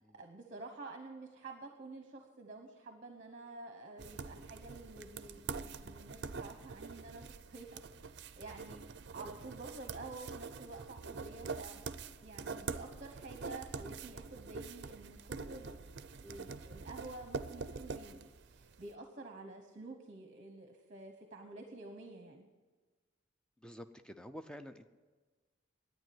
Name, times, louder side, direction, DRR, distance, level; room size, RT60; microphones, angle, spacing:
voice 1, 0.1-8.0 8.4-11.9 12.2-22.5, right 2 dB, 35° right, 5 dB, 1.0 m, -50 dB
sound 1, 4.0-18.8, right 4 dB, 55° right, 0.5 m, -45 dB
voice 2, 23.6-24.9, equal, 5° left, 9 dB, 0.5 m, -49 dB
10.5 x 9.3 x 9.3 m, 1.4 s
head